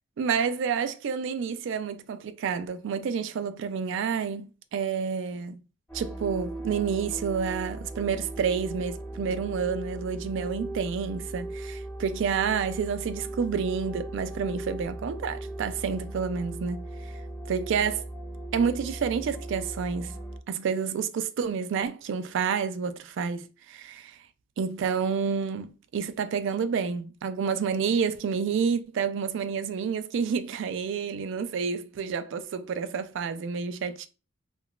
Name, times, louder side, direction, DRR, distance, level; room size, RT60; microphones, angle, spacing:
voice 1, 0.2-5.6 5.9-16.9 17.5-18.0 18.5-20.2 20.5-24.2 24.6-34.1, right 6 dB, 65° right, 0.3 m, -29 dB
sound 1, 5.9-20.4, right 2 dB, 10° left, 0.8 m, -38 dB
3.7 x 2.3 x 2.2 m
head